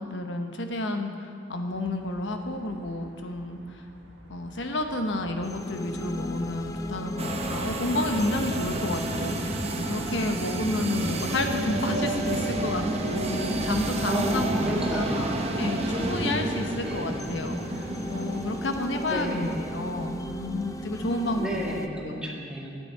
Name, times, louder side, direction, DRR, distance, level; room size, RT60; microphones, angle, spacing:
voice 1, 0.0-3.8 4.3-14.5 14.9-22.2, left 1 dB, 85° left, 5 dB, 1.0 m, -31 dB
sound 1, 1.7-17.4, right 1 dB, 70° right, 1.4 m, -51 dB
sound 2, 5.4-21.9, left 1 dB, 20° left, 0.5 m, -37 dB
sound 3, 7.2-20.1, right 2 dB, 35° right, 0.8 m, -31 dB
voice 2, 14.1-15.4 16.8-17.1 19.1-19.6 21.4-22.7, equal, 5° right, -4 dB, 1.9 m, -31 dB
13.0 x 9.5 x 4.5 m, 2.4 s
head